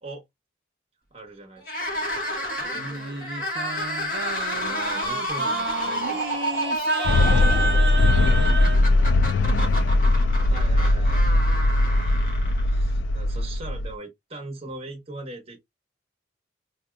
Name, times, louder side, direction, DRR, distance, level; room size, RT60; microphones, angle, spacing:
voice 1, 1.1-1.7 4.5-6.5 10.4-11.4 12.7-15.6, right 2 dB, 30° right, 1.0 m, -40 dB
sound 1, 1.6-12.9, equal, 45° left, 1.1 m, -30 dB
voice 2, 2.5-3.9 7.2-9.7, equal, 15° left, 2.4 m, -50 dB
Singing, 2.7-8.8, right 3 dB, 65° right, 0.6 m, -30 dB
sound 2, 7.1-13.9, left 2 dB, 75° left, 0.3 m, -20 dB
4.2 x 2.8 x 2.2 m
head